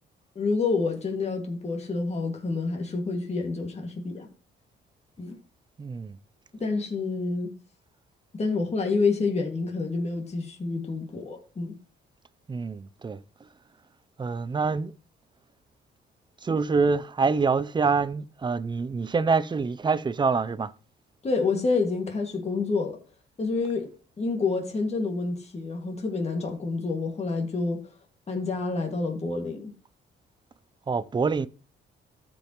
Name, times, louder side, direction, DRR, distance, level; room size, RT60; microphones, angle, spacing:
voice 1, 0.4-4.3 5.2-5.4 6.6-7.5 8.3-11.8 21.2-23.0 23.4-23.9 24.2-27.9 28.3-29.7, left 4 dB, 35° left, 2.1 m, -28 dB
voice 2, 5.8-6.2 12.5-13.2 14.2-14.9 16.4-20.7 30.9-31.5, right 4 dB, 25° right, 0.5 m, -26 dB
13.5 x 5.4 x 3.1 m
cardioid pair, 90°, 20 cm